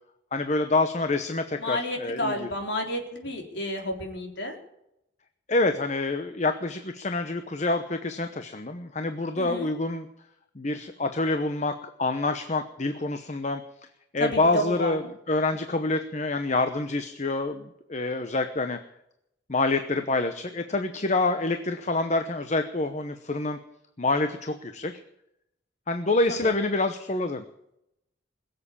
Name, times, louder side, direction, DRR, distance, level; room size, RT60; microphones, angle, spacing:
voice 1, 0.3-2.5 5.5-10.1 10.6-13.6 14.1-18.8 19.5-23.6 24.0-24.9 25.9-27.4, left 2 dB, 40° left, 8 dB, 0.9 m, -27 dB
voice 2, 1.6-4.6 9.4-9.7 14.2-14.9 26.4-26.5, left 1 dB, 65° left, 2 dB, 3.7 m, -31 dB
21.5 x 7.8 x 8.6 m, 0.81 s
head